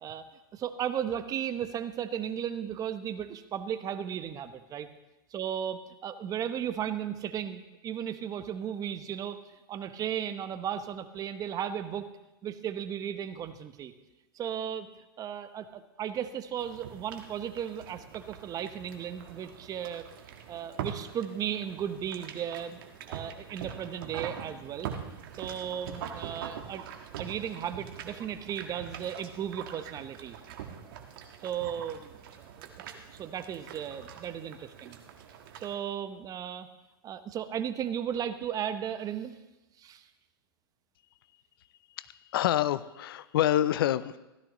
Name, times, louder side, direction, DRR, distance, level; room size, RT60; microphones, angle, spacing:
voice 1, 0.5-4.9 5.3-9.4 9.7-12.1 12.4-13.9 14.3-14.9 15.2-20.1 20.5-22.8 23.1-24.9 25.4-26.9 27.2-30.4 30.8-30.9 31.4-35.0 35.6-36.7 37.0-39.4 39.8-40.1, right 9 dB, 30° right, 11 dB, 0.9 m, -35 dB
sound 1, 16.6-35.7, right 8 dB, 65° right, 1.5 m, -44 dB
voice 2, 42.0-44.2, left 12 dB, 70° left, 17 dB, 0.5 m, -27 dB
16.0 x 13.5 x 3.1 m, 0.99 s
hypercardioid pair, 115°, 13 cm